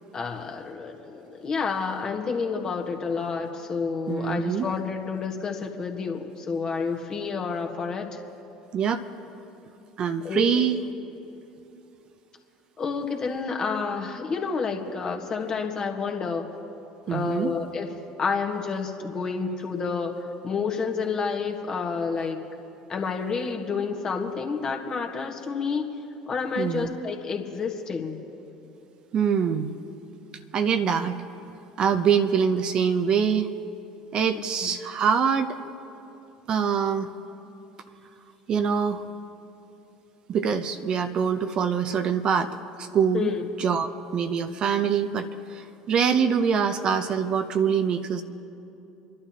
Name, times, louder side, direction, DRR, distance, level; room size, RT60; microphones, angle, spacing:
voice 1, 0.1-8.1 10.2-10.5 12.8-16.5 17.1-17.9 18.2-22.4 22.9-25.9 26.3-28.2 35.6-35.7 43.1-43.4, left 5 dB, 35° left, 3 dB, 1.7 m, -29 dB
voice 2, 4.1-4.7 8.7-9.0 10.0-10.8 17.1-17.5 26.6-26.9 29.1-29.7 30.5-31.2 31.8-33.5 34.1-35.6 36.5-37.1 38.5-39.0 40.3-42.5 42.8-43.3 43.6-48.2, right 7 dB, 45° right, 7 dB, 0.7 m, -24 dB
29.5 x 11.5 x 3.0 m, 2.8 s
hypercardioid pair, 65°, 2 cm